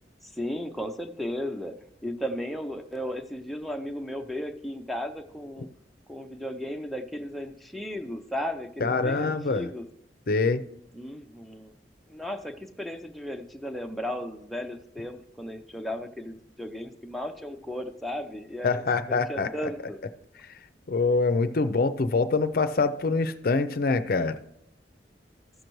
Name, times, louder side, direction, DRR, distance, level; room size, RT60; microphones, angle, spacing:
voice 1, 0.2-1.7 2.0-5.7 6.1-9.9 10.9-11.7 12.1-18.8 19.1-20.0, equal, ahead, 4 dB, 0.5 m, -35 dB
voice 2, 8.8-9.7 10.3-10.6 18.6-19.5 20.9-24.4, left 3 dB, 55° left, 11 dB, 0.5 m, -25 dB
14.5 x 6.5 x 3.0 m, 0.79 s
head